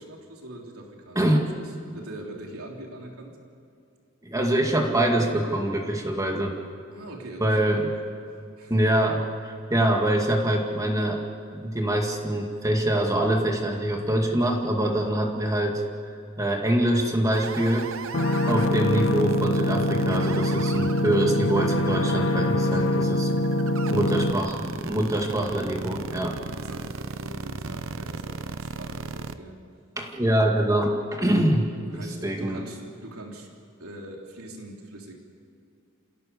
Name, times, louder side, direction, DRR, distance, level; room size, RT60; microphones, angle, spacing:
voice 1, 0.0-3.4 6.9-7.6 7.9-8.0 8.6-9.1 22.6-23.2 26.4-29.6 31.9-33.5 33.8-35.2, right 1 dB, 85° right, 1 dB, 3.3 m, -42 dB
voice 2, 4.2-6.5 7.4-7.9 8.7-11.2 11.5-15.8 16.4-17.9 18.5-23.3 23.9-26.4 30.0-31.7 31.9-32.6, right 1 dB, 15° right, 1 dB, 2.1 m, -24 dB
sound 1, 17.3-29.3, right 4 dB, 65° right, 0.9 m, -36 dB
sound 2, 18.1-24.3, left 1 dB, 65° left, 1.4 m, -24 dB
29.0 x 16.5 x 6.9 m, 2.5 s
head